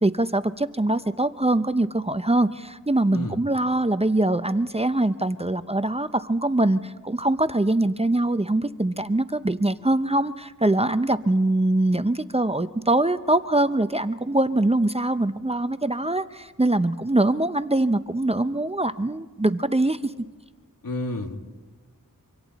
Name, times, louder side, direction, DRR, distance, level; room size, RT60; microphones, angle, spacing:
voice 1, 0.0-20.1, right 2 dB, 15° right, 11 dB, 0.7 m, -23 dB
voice 2, 20.8-21.3, left 1 dB, 70° left, 4 dB, 2.1 m, -30 dB
26.5 x 25.5 x 4.1 m, 1.3 s
wide cardioid pair, 55°, 35 cm